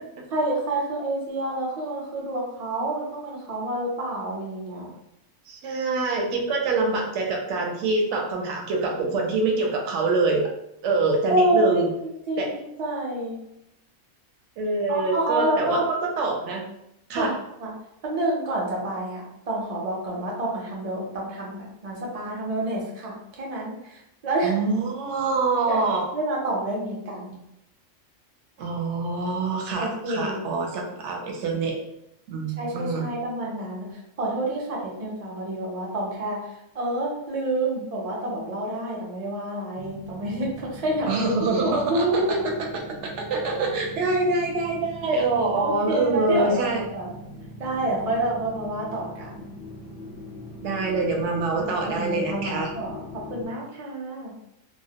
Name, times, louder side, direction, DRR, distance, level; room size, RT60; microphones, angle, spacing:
voice 1, 0.3-4.9 11.3-13.4 14.9-15.9 17.1-17.3 17.6-17.7 18.0-24.6 25.7-27.4 29.8-30.5 32.6-42.4 45.5-47.1 47.6-49.5 51.6-54.3, right 1 dB, 50° right, -3 dB, 0.4 m, -28 dB
voice 2, 5.5-10.5 10.8-11.9 12.4-12.5 14.6-16.6 17.1-17.3 24.4-26.0 28.6-31.8 32.3-33.1 41.1-42.4 43.3-46.8 50.6-52.7, right 3 dB, 70° right, 0 dB, 0.8 m, -25 dB
sound 1, 39.8-53.5, left 2 dB, 15° left, 0.3 m, -41 dB
2.3 x 2.0 x 2.7 m, 0.81 s
omnidirectional pair, 1.4 m